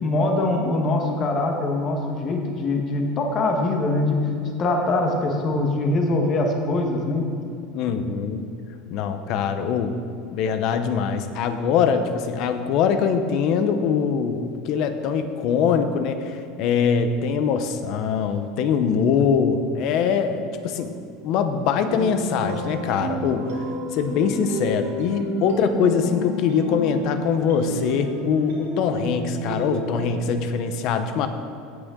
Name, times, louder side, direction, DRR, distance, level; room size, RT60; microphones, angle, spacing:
voice 1, 0.0-4.2 4.4-7.2, left 2 dB, 30° left, 2 dB, 1.3 m, -23 dB
voice 2, 7.7-8.5 8.9-9.9 10.3-20.9 21.2-23.6 23.9-31.3, left 6 dB, 45° left, 9 dB, 0.8 m, -23 dB
sound 1, 21.8-30.1, equal, 90° right, 3.0 m, -30 dB
17.0 x 8.1 x 3.8 m, 2.6 s
supercardioid pair, 170°, 0 cm